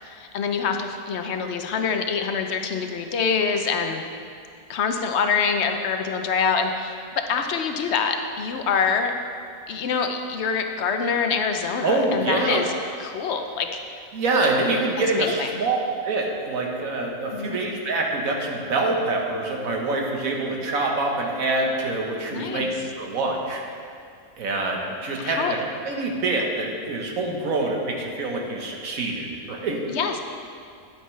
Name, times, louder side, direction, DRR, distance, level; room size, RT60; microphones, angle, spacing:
voice 1, 0.0-4.1 4.7-9.1 9.7-12.7 13.0-13.7 15.1-15.5 17.3-17.6 22.3-22.7 25.2-25.5 29.9-30.2, left 6 dB, 60° left, 5 dB, 0.8 m, -25 dB
voice 2, 11.8-12.6 14.1-15.8 16.0-22.7 23.0-23.6 24.4-25.6 25.8-29.8, right 2 dB, 75° right, 0 dB, 1.5 m, -25 dB
10.0 x 8.8 x 3.2 m, 2.3 s
omnidirectional pair, 1.4 m